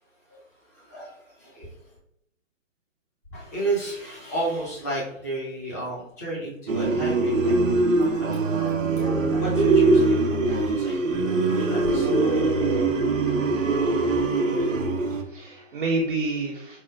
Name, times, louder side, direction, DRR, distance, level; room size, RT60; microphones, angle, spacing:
voice 1, 0.7-2.0 3.3-12.4, right 2 dB, 15° left, -5 dB, 0.5 m, -33 dB
sound 1, 6.7-15.2, right 3 dB, 90° right, 0.6 m, -22 dB
voice 2, 14.6-16.8, right 2 dB, 45° right, -2 dB, 0.5 m, -29 dB
4.3 x 2.1 x 2.3 m, 0.74 s
figure-of-eight pair, 135°, 38 cm